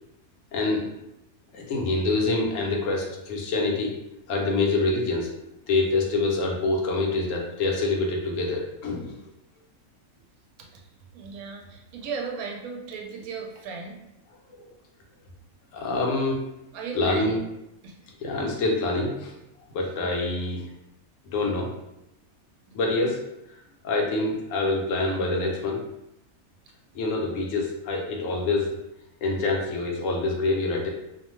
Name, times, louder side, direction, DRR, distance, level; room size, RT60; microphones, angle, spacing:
voice 1, 0.5-0.8 1.5-3.9 4.3-5.3 5.7-9.1 15.7-16.4 16.9-17.4 18.2-19.3 19.7-20.6 21.3-21.7 22.7-23.2 23.8-25.8 26.9-28.7 29.2-30.9, left 2 dB, 70° left, 0 dB, 0.9 m, -26 dB
voice 2, 11.1-14.0 16.7-17.4 17.8-18.0 18.4-18.5 19.8-20.1 22.7-23.1 27.1-27.6, right 4 dB, 80° right, 1 dB, 1.0 m, -37 dB
2.6 x 2.1 x 3.0 m, 0.88 s
omnidirectional pair, 1.5 m